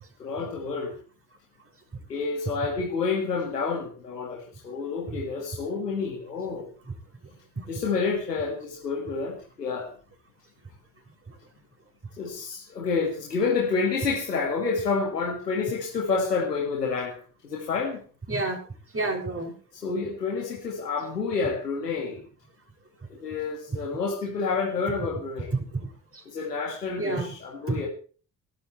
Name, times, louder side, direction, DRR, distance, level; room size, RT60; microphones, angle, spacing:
voice 1, 0.2-0.9 2.1-6.7 7.7-9.9 12.2-17.2 17.4-18.0 19.7-22.2 23.1-25.5 26.3-27.9, left 4 dB, 90° left, -1 dB, 2.1 m, -29 dB
voice 2, 18.3-18.6 18.9-19.5 23.7-23.8 25.5-25.9 26.1-26.2 27.0-27.3 27.7-27.8, right 3 dB, 30° right, 1 dB, 7.0 m, -29 dB
24.0 x 13.0 x 3.3 m, 0.39 s
figure-of-eight pair, 45°, 47 cm